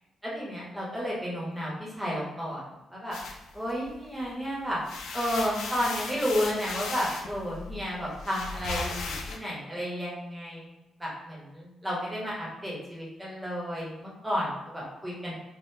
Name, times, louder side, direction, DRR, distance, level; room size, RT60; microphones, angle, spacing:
voice 1, 0.2-2.6 2.9-3.2 3.5-4.8 5.1-10.7 11.0-15.3, equal, 10° right, -5 dB, 0.9 m, -32 dB
sound 1, 3.1-4.3 4.7-9.4, left 4 dB, 85° left, 0.4 m, -37 dB
3.6 x 2.1 x 2.7 m, 1.0 s
cardioid pair, 145°, 0 cm